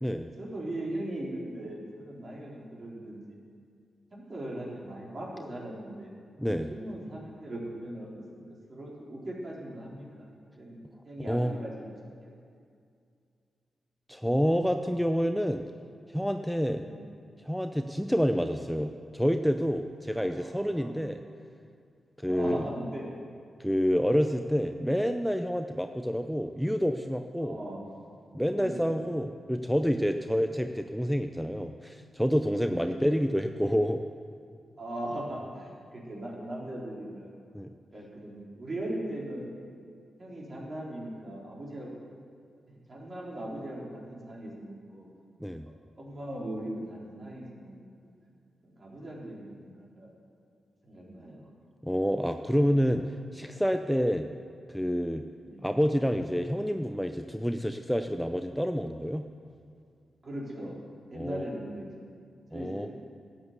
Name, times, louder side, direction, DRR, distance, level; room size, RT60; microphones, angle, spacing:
voice 1, 0.4-3.4 4.1-6.1 6.5-8.4 8.7-10.3 10.6-12.3 16.8-17.0 20.2-21.4 22.2-23.1 27.4-27.8 28.5-29.0 32.7-32.9 34.8-37.3 37.9-39.5 40.2-41.9 42.7-45.1 46.0-47.8 48.6-50.1 50.8-51.5 55.4-55.6 60.2-60.8 61.1-61.8 62.5-62.9, right 1 dB, 45° right, -4 dB, 4.1 m, -39 dB
voice 2, 6.4-6.7 11.2-11.5 14.1-15.6 16.1-16.8 17.4-21.2 22.2-22.6 23.6-27.6 28.3-34.0 37.5-37.7 45.4-45.7 51.8-53.0 53.3-54.2 54.7-55.2 55.6-59.2 61.2-61.4 62.5-62.9, equal, ahead, 6 dB, 0.6 m, -28 dB
12.5 x 8.2 x 8.1 m, 2.3 s
cardioid pair, 55°, 0 cm